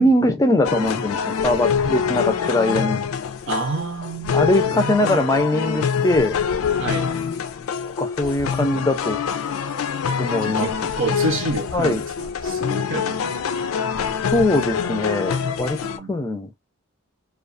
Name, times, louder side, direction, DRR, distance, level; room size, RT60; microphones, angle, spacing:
voice 1, 0.0-3.0 4.3-6.4 8.0-9.2 10.2-10.7 11.7-12.0 14.3-15.8 16.1-16.6, left 1 dB, 15° left, 0.5 m, -21 dB
sound 1, 0.6-16.0, left 6 dB, 80° left, 0.4 m, -25 dB
voice 2, 3.5-5.2 6.8-7.1 10.4-13.4 15.8-16.3, right 3 dB, 60° right, 0.8 m, -29 dB
2.4 x 2.3 x 2.5 m
head